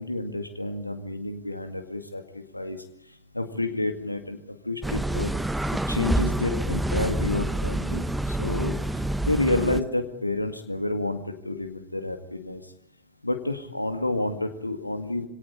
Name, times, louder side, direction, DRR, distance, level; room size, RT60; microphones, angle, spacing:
voice 1, 0.0-5.3 5.9-12.7 13.2-15.3, left 2 dB, 85° left, 7 dB, 1.9 m, -30 dB
sound 1, 4.8-9.8, right 1 dB, 5° right, 0.9 m, -27 dB
25.5 x 17.5 x 9.8 m, 0.73 s
figure-of-eight pair, 90°, 0 cm